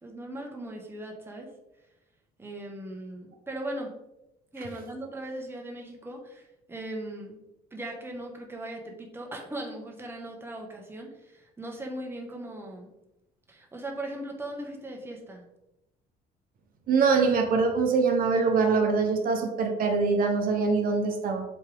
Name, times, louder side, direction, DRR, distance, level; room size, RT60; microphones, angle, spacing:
voice 1, 0.0-1.5 2.4-3.9 4.5-7.4 7.7-12.9 13.5-15.4, right 1 dB, 15° right, 0 dB, 1.4 m, -38 dB
voice 2, 16.9-21.4, right 4 dB, 60° right, 3 dB, 1.0 m, -24 dB
7.9 x 3.4 x 3.6 m, 0.89 s
cardioid pair, 110°, 17 cm